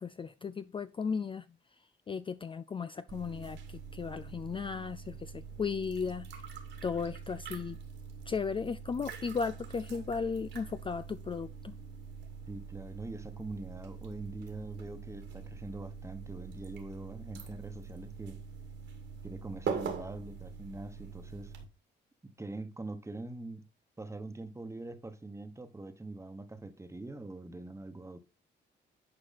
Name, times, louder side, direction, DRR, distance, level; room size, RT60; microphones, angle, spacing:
voice 1, 0.0-1.5 2.1-6.3 6.8-7.8 8.3-11.7, left 5 dB, 25° left, 0.4 m, -35 dB
sound 1, 3.1-21.6, right 6 dB, 70° right, 2.4 m, -44 dB
voice 2, 12.5-18.4 19.2-21.5 22.2-23.6 24.0-28.2, right 2 dB, 15° right, 1.3 m, -43 dB
10.5 x 4.8 x 4.1 m
cardioid pair, 90°, 20 cm